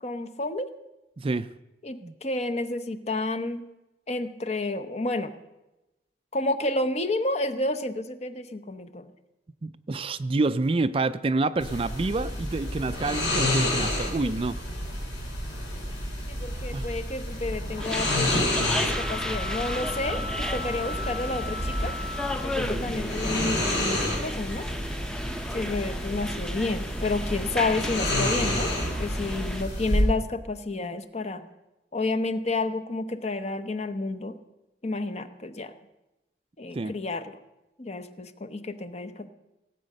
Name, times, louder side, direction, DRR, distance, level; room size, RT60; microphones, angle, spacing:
voice 1, 0.0-0.7 1.8-3.6 4.1-5.3 6.3-9.1 14.2-14.3 16.3-18.3 18.8-21.9 22.4-24.7 25.5-31.5 31.9-34.4 34.8-35.7 36.6-37.4 37.8-39.3, left 2 dB, 40° left, 10 dB, 0.8 m, -30 dB
voice 2, 1.2-1.5 2.0-2.1 9.6-14.6 16.7-16.9 22.6-22.9 36.7-36.9, right 3 dB, 30° right, 13 dB, 0.4 m, -28 dB
sound 1, 11.6-30.0, left 1 dB, 85° left, 5.8 m, -30 dB
sound 2, 17.8-29.6, equal, 5° left, 0.7 m, -34 dB
sound 3, 18.9-23.0, left 3 dB, 70° left, 0.8 m, -37 dB
17.5 x 8.2 x 6.5 m, 1.0 s
head